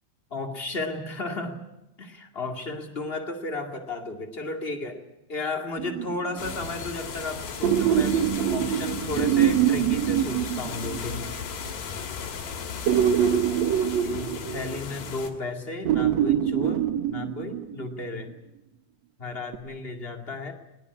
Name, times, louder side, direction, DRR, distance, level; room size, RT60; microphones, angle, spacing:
voice 1, 0.3-1.6 2.0-5.0 5.3-11.2 14.0-18.3 19.2-20.5, left 2 dB, 25° left, 4 dB, 1.4 m, -34 dB
sound 1, 5.8-6.5 7.6-11.2 12.9-15.1 15.8-17.9 19.5-19.6, right 10 dB, 70° right, 1.6 m, -24 dB
sound 2, 6.4-15.3, left 6 dB, 55° left, 3.9 m, -36 dB
20.5 x 20.0 x 9.8 m, 0.94 s
omnidirectional pair, 4.7 m